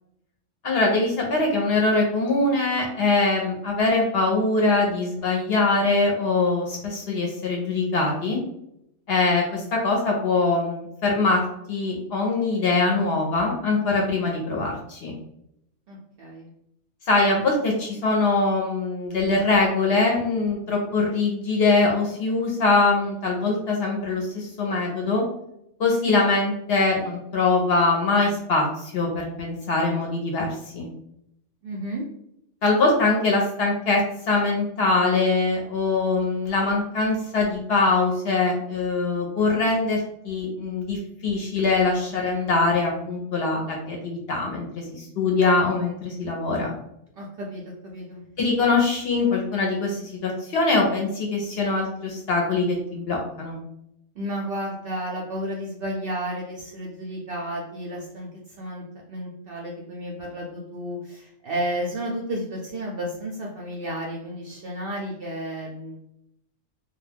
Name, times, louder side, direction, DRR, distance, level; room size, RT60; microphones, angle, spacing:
voice 1, 0.6-8.4 9.1-11.4 11.7-15.1 17.1-25.2 25.8-30.5 30.7-30.9 32.6-34.0 34.3-46.7 48.4-53.6, left 3 dB, 60° left, -1 dB, 0.7 m, -23 dB
voice 2, 15.9-16.5 31.6-32.0 47.2-48.2 54.2-58.3 58.6-66.0, right 1 dB, 65° right, -2 dB, 0.6 m, -32 dB
2.3 x 2.2 x 3.3 m, 0.78 s
omnidirectional pair, 1.4 m